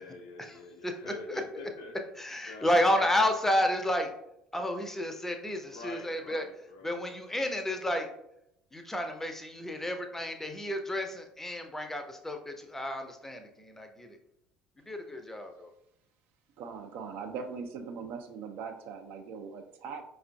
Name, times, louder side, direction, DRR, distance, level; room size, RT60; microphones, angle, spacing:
voice 1, 0.0-2.0 2.5-3.2 5.6-7.0, left 3 dB, 65° left, 4 dB, 0.4 m, -46 dB
voice 2, 0.8-1.6 2.2-4.1 4.5-6.5 6.8-8.1 8.7-14.2 14.9-15.7, left 1 dB, 10° left, 5 dB, 0.5 m, -31 dB
voice 3, 16.6-20.0, right 5 dB, 55° right, 6 dB, 0.4 m, -40 dB
4.9 x 2.4 x 2.2 m, 0.79 s
figure-of-eight pair, 60°, 4 cm